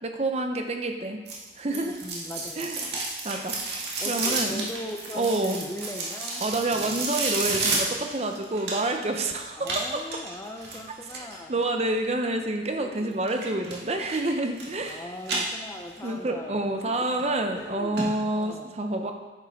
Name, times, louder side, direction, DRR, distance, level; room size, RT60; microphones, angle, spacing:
voice 1, 0.0-1.2 1.6-2.0 2.6-2.8 3.2-4.6 5.1-5.6 6.4-10.0 11.5-15.1 16.0-19.1, right 2 dB, 35° right, 5 dB, 0.7 m, -28 dB
sound 1, 1.3-9.1 9.6-11.4 13.3-13.8 14.1-14.9 15.2-16.1 16.5-16.6 17.2-17.3 17.6-17.7 18.0-18.1 18.4-18.5, right 3 dB, 60° right, 1.8 m, -31 dB
voice 2, 1.7-3.0 4.0-7.0 9.5-11.6 12.8-13.2 14.8-17.2 17.5-18.7, left 1 dB, 15° left, 3 dB, 0.5 m, -40 dB
9.8 x 7.1 x 3.5 m, 1.2 s
head